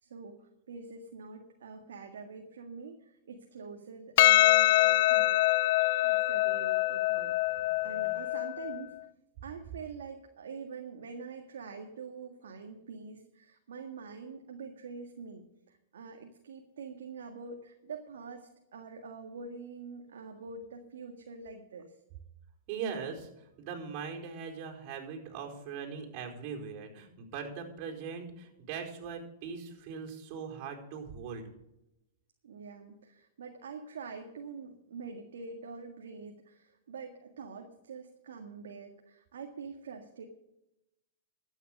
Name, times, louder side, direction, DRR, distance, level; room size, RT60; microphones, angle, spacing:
voice 1, 0.0-5.6 6.0-9.0 9.4-22.0 32.4-40.2, right 5 dB, 80° right, 3 dB, 1.8 m, -45 dB
Percussion, 4.2-8.8, left 16 dB, 60° left, 0.5 m, -25 dB
voice 2, 5.8-6.2 7.5-8.1 22.7-31.5, right 6 dB, 45° right, 1 dB, 4.5 m, -41 dB
13.0 x 9.3 x 6.6 m, 0.87 s
hypercardioid pair, 115°, 0 cm